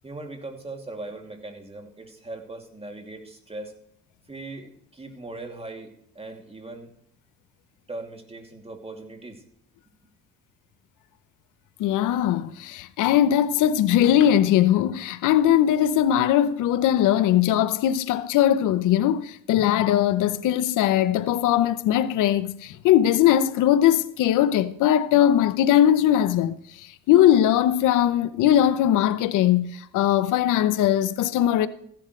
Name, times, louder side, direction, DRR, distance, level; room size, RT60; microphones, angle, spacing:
voice 1, 0.0-3.7 4.3-6.9 7.9-9.4, right 2 dB, 20° right, 2.7 m, -39 dB
voice 2, 11.8-26.6 27.1-31.7, left 11 dB, 90° left, 0.8 m, -20 dB
15.5 x 11.5 x 3.2 m
cardioid pair, 90°, 30 cm